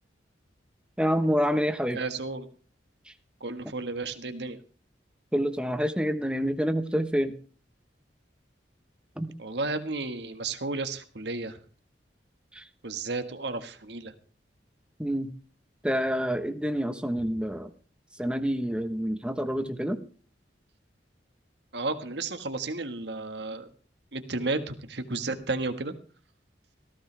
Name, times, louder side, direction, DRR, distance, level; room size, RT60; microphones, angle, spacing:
voice 1, 1.0-2.0 5.3-7.3 9.2-9.3 12.5-12.6 15.0-15.3 15.8-17.7 18.2-20.0, equal, 5° right, 8 dB, 1.1 m, -27 dB
voice 2, 1.9-2.4 3.4-4.6 9.4-11.6 12.8-14.1 21.7-23.7 24.1-25.9, right 3 dB, 70° right, 8 dB, 1.6 m, -33 dB
18.5 x 15.5 x 3.4 m, 0.40 s
head